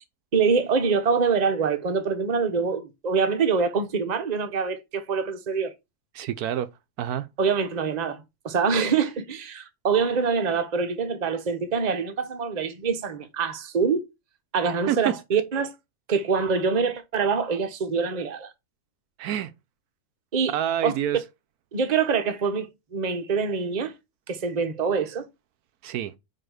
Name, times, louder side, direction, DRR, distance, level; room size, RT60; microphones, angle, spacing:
voice 1, 0.3-5.7 7.4-14.0 14.5-15.7 16.1-18.5 20.3-20.5 20.8-20.9 21.7-23.9 24.3-25.3, right 5 dB, 30° right, 0.9 m, -25 dB
voice 2, 6.1-6.7 7.0-7.3 14.9-15.2 19.2-19.5 20.5-21.2 25.8-26.1, right 10 dB, 75° right, 1.1 m, -27 dB
5.0 x 4.9 x 6.2 m
omnidirectional pair, 1.7 m